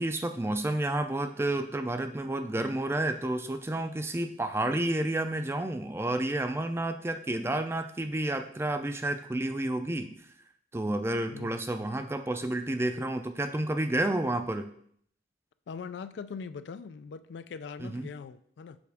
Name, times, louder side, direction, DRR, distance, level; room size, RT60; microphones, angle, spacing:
voice 1, 0.0-10.1 10.7-14.7 17.8-18.1, right 1 dB, 15° right, 8 dB, 0.4 m, -30 dB
voice 2, 11.3-11.6 15.7-18.8, left 5 dB, 85° left, 13 dB, 0.3 m, -41 dB
6.9 x 4.8 x 3.5 m, 0.63 s
head